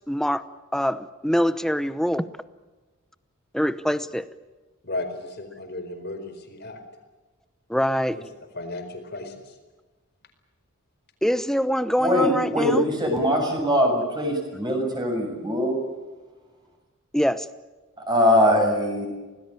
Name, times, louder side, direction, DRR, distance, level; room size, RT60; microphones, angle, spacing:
voice 1, 0.1-0.4 0.7-2.2 3.5-4.2 7.7-8.2 11.2-12.9 17.1-17.5, equal, ahead, 14 dB, 0.8 m, -24 dB
voice 2, 4.8-6.8 8.1-8.2 8.5-9.6, left 2 dB, 50° left, 6 dB, 4.6 m, -35 dB
voice 3, 12.0-15.8 18.1-19.1, equal, 20° right, 2 dB, 7.2 m, -22 dB
26.5 x 19.0 x 8.9 m, 1.2 s
head